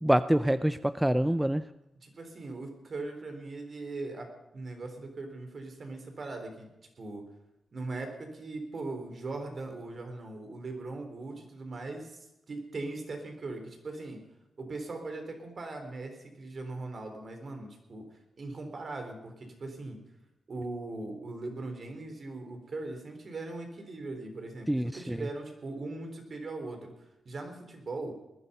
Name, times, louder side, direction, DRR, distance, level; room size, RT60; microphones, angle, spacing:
voice 1, 0.0-1.6 24.7-25.2, right 1 dB, 5° right, 13 dB, 0.5 m, -26 dB
voice 2, 2.0-6.7 7.0-7.3 7.7-14.2 14.6-20.0 20.5-26.9 27.3-28.2, right 2 dB, 50° right, 5 dB, 3.7 m, -40 dB
19.5 x 11.0 x 5.5 m, 0.92 s
cardioid pair, 65°, 0 cm